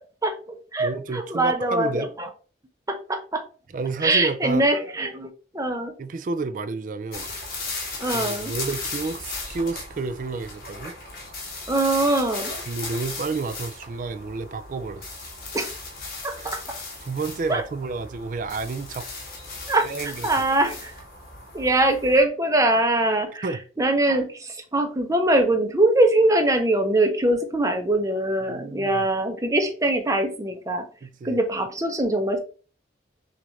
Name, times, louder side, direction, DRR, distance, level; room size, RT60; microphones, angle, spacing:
voice 1, 0.2-2.3 2.9-3.4 4.0-5.9 8.0-8.5 11.7-12.5 15.5-15.7 16.2-16.8 17.5-17.6 19.7-20.9 21.5-30.9 31.2-32.4, right 2 dB, 20° right, 0.7 m, -23 dB
voice 2, 0.8-2.1 3.7-4.7 6.0-7.3 8.1-10.9 12.7-15.2 16.3-16.5 17.0-19.1 19.8-20.3 23.4-23.6 28.5-29.0 31.0-31.4, right 3 dB, 45° right, 0.3 m, -30 dB
sound 1, 7.1-22.2, left 3 dB, 55° left, 1.4 m, -36 dB
6.1 x 2.5 x 3.1 m
head